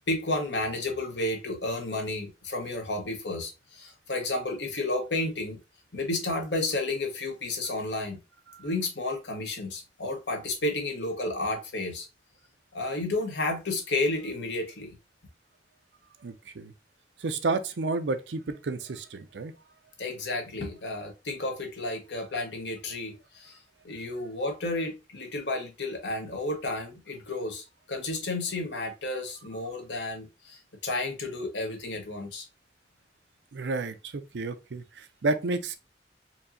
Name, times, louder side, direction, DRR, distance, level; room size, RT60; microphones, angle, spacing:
voice 1, 0.1-5.6 5.9-8.2 8.6-12.1 12.7-15.0 20.0-23.6 23.8-32.5, left 2 dB, 80° left, 1.2 m, -32 dB
voice 2, 16.2-16.7 17.2-19.5 33.5-35.8, right 3 dB, 90° right, 0.5 m, -31 dB
4.5 x 2.8 x 2.6 m
head